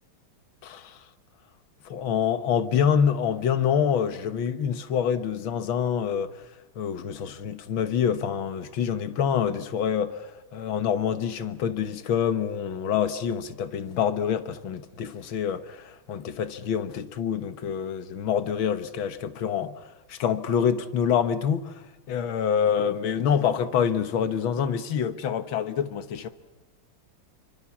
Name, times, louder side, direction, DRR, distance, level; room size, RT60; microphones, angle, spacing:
voice 1, 0.6-1.0 1.9-6.3 6.8-19.8 20.1-21.7 22.1-26.3, left 8 dB, 70° left, 2.0 m, -26 dB
28.5 x 25.0 x 7.2 m
omnidirectional pair, 2.4 m